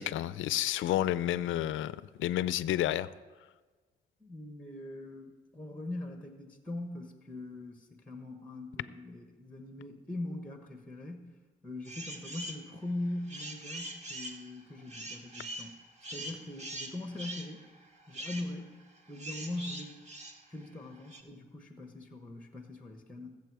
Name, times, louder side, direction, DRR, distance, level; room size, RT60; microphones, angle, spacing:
voice 1, 0.0-1.9 2.2-3.1, left 13 dB, 80° left, 16 dB, 0.5 m, -30 dB
voice 2, 4.2-11.3 11.6-15.8 16.1-17.7 18.1-18.8 19.1-20.0 20.5-23.4, left 2 dB, 5° left, 5 dB, 1.2 m, -41 dB
sound 1, 11.8-12.6 13.1-21.2, right 1 dB, 35° right, 1.7 m, -43 dB
20.5 x 7.5 x 4.8 m, 1.3 s
cardioid pair, 90°, 20 cm